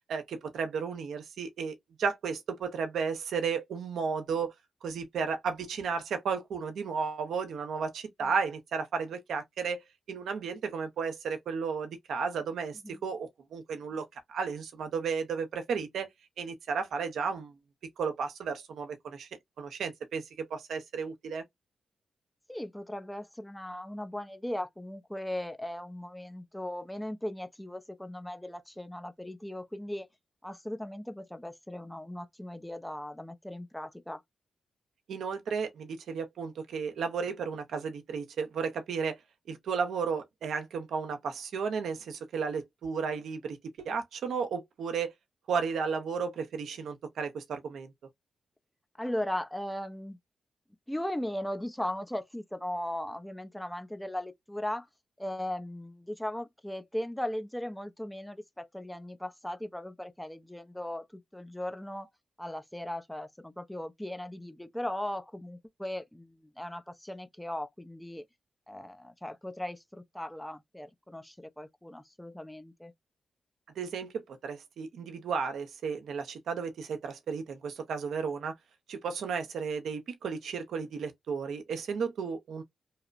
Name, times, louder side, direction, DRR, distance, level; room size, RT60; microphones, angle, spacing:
voice 1, 0.1-4.5 4.8-9.8 10.1-16.1 16.4-17.5 18.0-19.3 19.6-21.4 35.1-39.2 39.5-45.1 45.5-47.9 73.8-78.5 78.9-82.6, right 5 dB, 80° right, 0.6 m, -33 dB
voice 2, 22.5-30.1 30.4-34.2 49.0-50.2 50.9-54.9 55.2-62.1 62.4-68.2 68.7-72.9, left 1 dB, 5° left, 0.5 m, -38 dB
2.8 x 2.1 x 2.4 m
cardioid pair, 60°, 0 cm